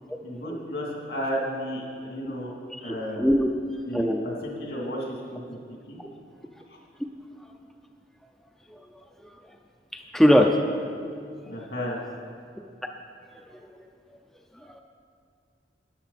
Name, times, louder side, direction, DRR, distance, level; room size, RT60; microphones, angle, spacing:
voice 1, 0.2-2.5 2.8-3.4 3.8-6.0 11.4-12.0, equal, 75° left, -2 dB, 2.7 m, -33 dB
voice 2, 2.7-3.5 3.9-4.2 8.7-8.8 9.9-10.8, equal, 5° left, 2 dB, 0.5 m, -21 dB
13.0 x 10.5 x 4.2 m, 2.3 s
head